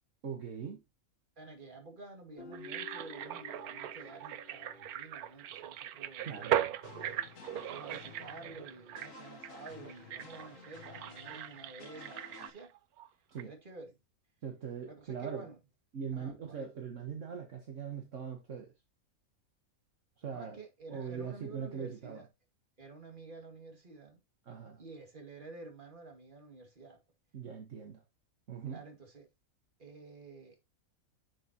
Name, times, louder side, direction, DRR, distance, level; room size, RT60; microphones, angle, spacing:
voice 1, 0.2-0.8 6.2-6.6 13.3-13.5 14.4-15.5 15.9-18.7 20.2-20.6 20.9-22.2 24.5-24.8 27.3-28.0 28.5-28.8, right 7 dB, 55° right, 1.6 m, -41 dB
voice 2, 1.4-6.8 7.5-12.7 13.4-14.0 14.9-15.6 16.1-16.7 20.2-22.3 22.8-24.2 24.8-27.0 28.7-29.3 29.8-30.6, right 3 dB, 35° right, 2.4 m, -50 dB
Guitar, 2.4-5.7, left 6 dB, 40° left, 1.1 m, -52 dB
sound 1, 2.5-13.1 13.4-13.5, right 11 dB, 85° right, 1.2 m, -39 dB
sound 2, 6.8-12.5, left 6 dB, 60° left, 1.6 m, -53 dB
10.5 x 6.3 x 2.9 m
omnidirectional pair, 1.5 m